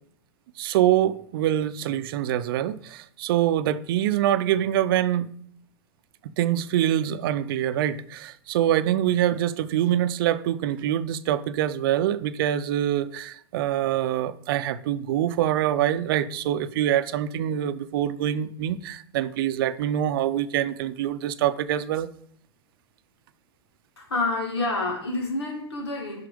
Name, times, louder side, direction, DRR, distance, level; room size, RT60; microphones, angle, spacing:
voice 1, 0.6-5.3 6.2-22.1, right 11 dB, 60° right, 0.6 m, -25 dB
voice 2, 24.0-26.3, left 2 dB, 85° left, 2.3 m, -28 dB
7.7 x 5.8 x 5.2 m
hypercardioid pair, 110°, 13 cm